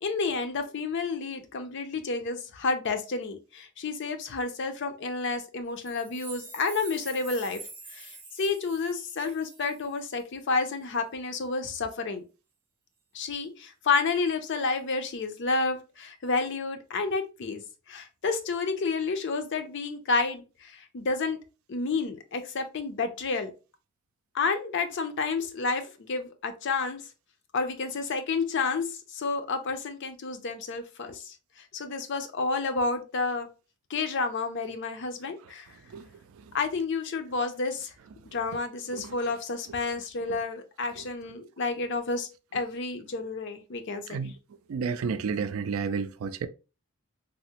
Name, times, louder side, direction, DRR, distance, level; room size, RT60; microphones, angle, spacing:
voice 1, 0.0-7.6 7.9-12.2 13.1-17.6 17.9-21.4 21.7-23.5 24.3-27.0 27.5-31.3 31.7-33.5 33.9-35.7 36.5-37.9 38.2-44.2, left 4 dB, 55° left, 0.5 m, -30 dB
sound 1, 5.8-10.2, right 3 dB, 10° right, 0.6 m, -46 dB
voice 2, 44.7-46.5, right 5 dB, 70° right, 0.3 m, -31 dB
3.4 x 2.0 x 2.8 m
head